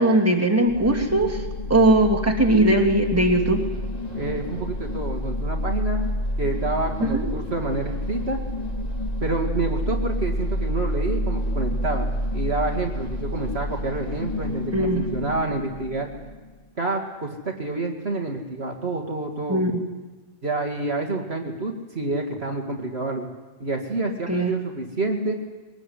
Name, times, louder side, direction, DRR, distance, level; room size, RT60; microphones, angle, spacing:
voice 1, 0.0-1.4 1.7-3.6 7.0-7.3 14.7-15.0 19.5-19.8 24.3-24.5, right 1 dB, 10° right, 1 dB, 2.7 m, -19 dB
sound 1, 0.7-16.6, left 1 dB, 30° left, 2.4 m, -29 dB
voice 2, 4.1-6.1 6.4-8.4 9.2-16.1 16.8-19.6 20.4-23.3 23.6-25.3, right 2 dB, 50° right, 1 dB, 2.4 m, -28 dB
22.5 x 19.5 x 9.9 m, 1.3 s
omnidirectional pair, 1.4 m